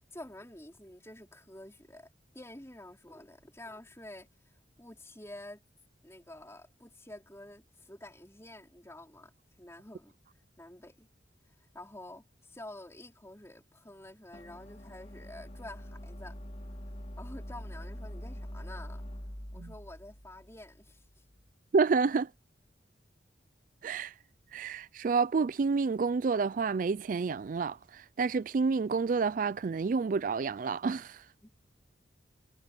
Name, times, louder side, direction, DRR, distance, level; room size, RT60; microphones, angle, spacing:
voice 1, 0.1-2.1 2.3-4.3 4.8-5.6 6.0-9.3 9.6-10.1 10.6-11.1 11.7-16.4 17.2-19.0 19.5-21.0 31.4-31.5, left 1 dB, 15° left, 4.5 m, -49 dB
sound 1, 14.3-21.4, equal, 40° left, 2.7 m, -44 dB
voice 2, 21.7-22.3 23.8-24.1 24.5-31.2, right 4 dB, 45° right, 0.3 m, -29 dB
head